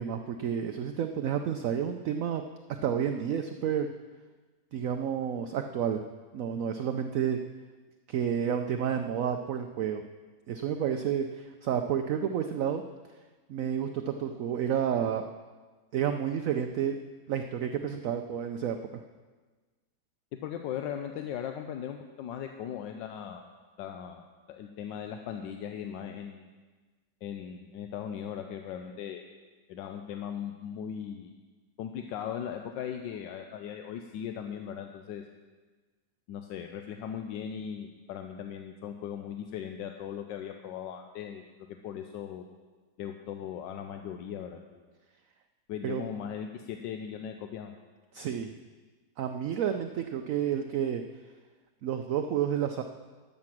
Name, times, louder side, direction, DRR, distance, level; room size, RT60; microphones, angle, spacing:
voice 1, 0.0-2.4 2.7-3.9 4.7-6.0 6.3-7.4 8.1-10.0 10.5-12.8 13.5-15.2 15.9-17.0 17.3-18.8 45.8-46.0 48.1-48.5 49.2-51.0 51.8-52.8, right 8 dB, 70° right, 6 dB, 0.8 m, -30 dB
voice 2, 20.3-23.5 23.8-26.5 27.2-29.2 29.7-31.3 31.8-35.2 36.3-41.4 41.8-42.4 43.0-44.8 45.7-47.7, left 9 dB, 85° left, 5 dB, 1.3 m, -38 dB
12.5 x 7.7 x 6.0 m, 1.3 s
omnidirectional pair, 1.9 m